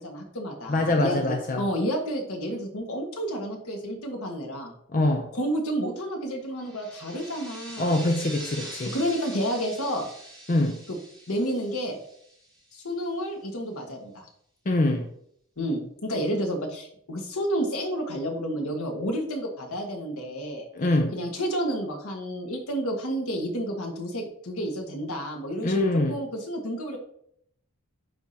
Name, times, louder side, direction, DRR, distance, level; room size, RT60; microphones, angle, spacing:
voice 1, 0.0-4.7 5.3-8.1 8.9-10.1 11.3-12.0 12.7-14.3 15.6-20.7 21.1-27.0, equal, 75° left, 1 dB, 1.5 m, -30 dB
voice 2, 0.7-1.7 4.9-5.3 7.8-9.0 10.5-10.8 14.7-15.1 20.7-21.1 25.6-26.2, left 2 dB, 35° left, 3 dB, 0.6 m, -24 dB
sound 1, 6.6-12.9, right 1 dB, 5° left, 1.8 m, -43 dB
10.0 x 3.6 x 2.8 m, 0.68 s
head